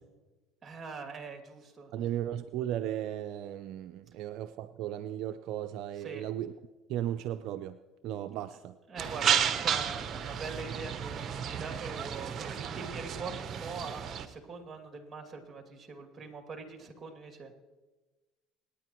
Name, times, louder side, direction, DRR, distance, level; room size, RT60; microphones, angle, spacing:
voice 1, 0.6-1.9 6.0-6.3 8.9-17.5, right 4 dB, 25° right, 4 dB, 2.5 m, -43 dB
voice 2, 1.9-6.5 6.9-8.8 9.2-9.4, right 11 dB, 65° right, 10 dB, 0.4 m, -36 dB
sound 1, 9.0-14.3, right 8 dB, 45° right, 0.9 m, -32 dB
26.5 x 9.9 x 3.1 m, 1.2 s
supercardioid pair, 85°, 0 cm